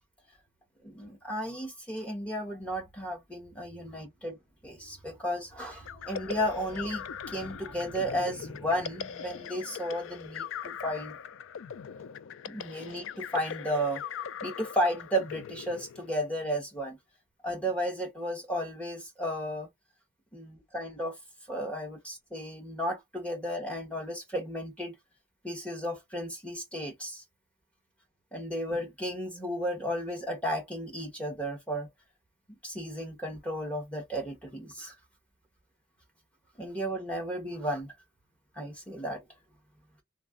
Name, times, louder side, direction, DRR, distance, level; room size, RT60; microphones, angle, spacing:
voice 1, 0.8-4.4 4.6-11.2 12.5-14.0 14.4-17.0 17.4-19.7 20.3-21.1 21.5-25.0 25.4-27.2 28.3-31.9 32.5-34.9 36.6-37.9 38.6-39.2, equal, 5° left, 1.0 m, -34 dB
sound 1, 5.9-16.4, left 7 dB, 85° left, 0.3 m, -41 dB
3.2 x 2.3 x 2.4 m
head